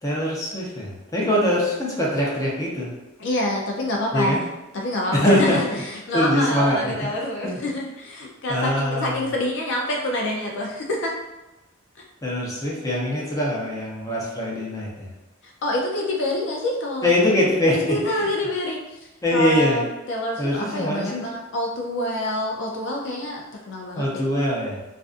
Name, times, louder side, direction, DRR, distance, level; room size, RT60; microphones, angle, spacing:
voice 1, 0.0-2.9 4.1-4.5 5.1-5.6 6.1-6.9 7.4-7.5 8.5-9.3 12.2-15.1 17.0-18.3 19.2-19.8 20.4-21.2 23.9-24.8, left 1 dB, 15° left, -5 dB, 0.7 m, -23 dB
voice 2, 1.2-1.5 3.2-4.4 4.7-11.1 15.4-17.3 17.7-19.0 19.3-24.3, left 1 dB, 60° left, 0 dB, 0.4 m, -27 dB
2.5 x 2.3 x 2.4 m, 1.0 s
head